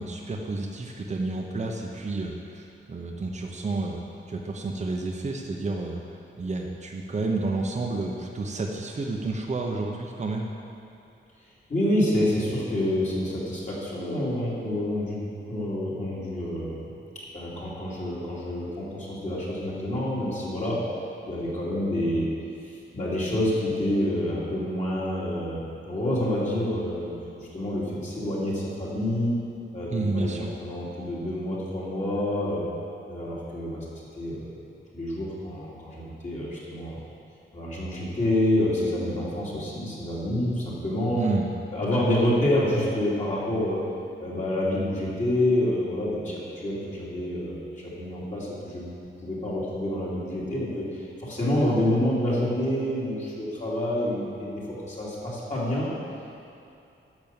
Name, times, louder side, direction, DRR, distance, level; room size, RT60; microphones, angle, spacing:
voice 1, 0.0-4.0 4.3-10.5 29.9-30.5 41.2-41.5, right 3 dB, 35° right, 0 dB, 0.8 m, -30 dB
voice 2, 11.7-15.2 15.5-16.8 17.3-20.8 21.3-22.3 22.6-29.3 29.7-30.3 30.6-32.6 33.1-33.8 34.2-34.5 34.9-37.0 37.5-41.3 41.7-43.8 44.2-55.9, left 1 dB, 35° left, -7 dB, 2.7 m, -28 dB
10.5 x 7.0 x 7.0 m, 2.6 s
wide cardioid pair, 165°, 21 cm